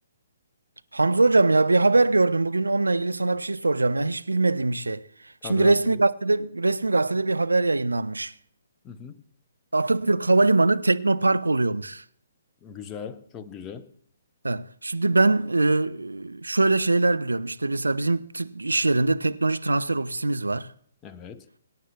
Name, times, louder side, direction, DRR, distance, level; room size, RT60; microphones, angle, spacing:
voice 1, 0.9-8.3 9.7-12.0 14.4-20.7, right 2 dB, 75° right, 0.5 m, -22 dB
voice 2, 5.4-5.7 8.8-9.2 12.6-13.9 21.0-21.5, left 7 dB, 20° left, 0.8 m, -38 dB
24.0 x 9.3 x 2.3 m
figure-of-eight pair, 130°, 0 cm